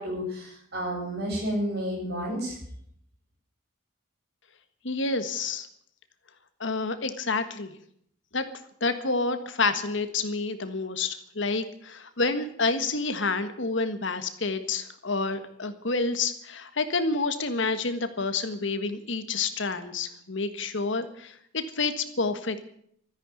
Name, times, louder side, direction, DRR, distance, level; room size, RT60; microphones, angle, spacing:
voice 1, 0.0-2.6, equal, 50° right, -1 dB, 8.0 m, -31 dB
voice 2, 4.8-5.7 6.6-7.7 8.3-8.4 8.8-22.6, left 3 dB, 65° left, 9 dB, 1.6 m, -29 dB
13.5 x 10.0 x 9.7 m, 0.68 s
head